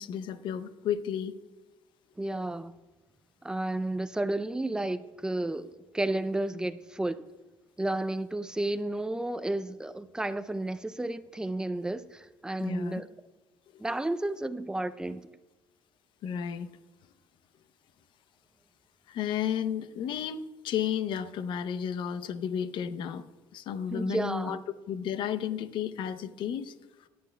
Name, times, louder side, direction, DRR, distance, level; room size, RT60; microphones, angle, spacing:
voice 1, 0.0-1.3 12.6-13.0 16.2-16.7 19.1-23.2 23.5-24.6 24.9-26.7, left 8 dB, 65° left, 0.7 m, -32 dB
voice 2, 2.2-2.7 3.4-7.2 7.8-13.1 13.8-15.3 23.9-24.6, right 1 dB, 10° right, 0.5 m, -32 dB
17.5 x 10.5 x 2.3 m
cardioid pair, 100°, 9 cm